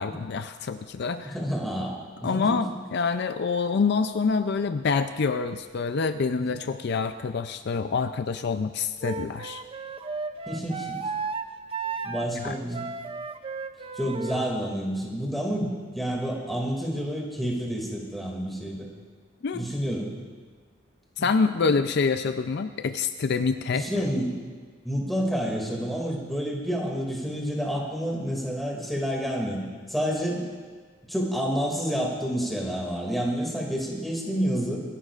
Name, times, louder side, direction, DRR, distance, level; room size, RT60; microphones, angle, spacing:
voice 1, 0.0-1.3 2.2-9.6 12.4-12.6 19.4-19.7 21.2-23.9, left 5 dB, 60° left, 9 dB, 0.4 m, -26 dB
voice 2, 1.2-2.6 10.5-11.0 12.0-12.9 14.0-18.9 19.5-20.1 21.2-21.3 23.7-24.4 24.8-29.6 29.9-30.4 31.1-34.8, equal, ahead, -2 dB, 2.3 m, -29 dB
Wind instrument woodwind instrument, 9.0-14.5, right 4 dB, 30° right, 0.5 m, -34 dB
26.5 x 11.5 x 2.5 m, 1.5 s
head